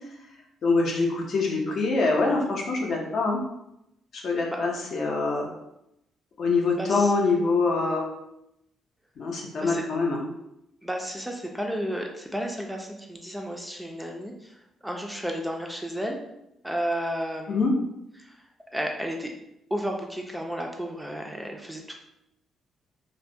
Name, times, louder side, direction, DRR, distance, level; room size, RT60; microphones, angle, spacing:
voice 1, 0.6-3.4 4.1-5.5 6.4-8.0 9.2-10.2 17.5-17.7, left 3 dB, 60° left, 0 dB, 0.5 m, -24 dB
voice 2, 6.8-7.1 9.6-9.8 10.8-16.2 16.6-17.7 18.2-18.4 18.7-19.3 19.7-21.9, equal, 5° right, 1 dB, 0.3 m, -32 dB
2.3 x 2.1 x 2.6 m, 0.84 s
cardioid pair, 90°, 0 cm